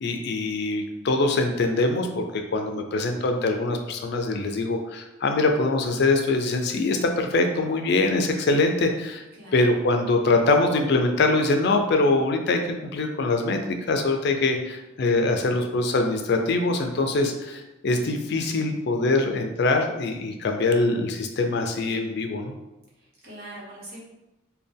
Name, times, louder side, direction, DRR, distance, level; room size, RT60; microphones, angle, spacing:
voice 1, 0.0-9.2 9.5-22.5, left 2 dB, 55° left, 5 dB, 0.4 m, -23 dB
voice 2, 15.3-15.6 23.2-24.0, right 1 dB, 50° right, -7 dB, 1.4 m, -42 dB
4.1 x 2.2 x 3.4 m, 0.98 s
head